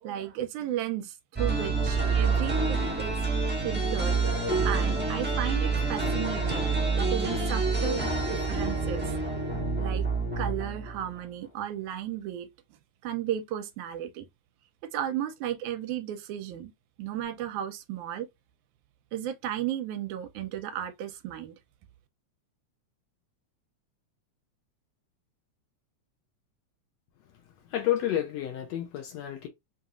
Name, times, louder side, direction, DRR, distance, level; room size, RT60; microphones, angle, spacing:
voice 1, 0.0-3.2 3.6-4.2 4.7-9.1 9.8-10.1 10.4-12.5 13.0-14.3 14.9-16.7 17.0-18.3 19.1-21.6, right 11 dB, 85° right, 2.1 m, -34 dB
sound 1, 1.4-11.2, right 4 dB, 10° right, 0.5 m, -27 dB
voice 2, 27.7-29.5, left 11 dB, 70° left, 1.7 m, -30 dB
5.4 x 2.9 x 2.4 m
omnidirectional pair, 3.5 m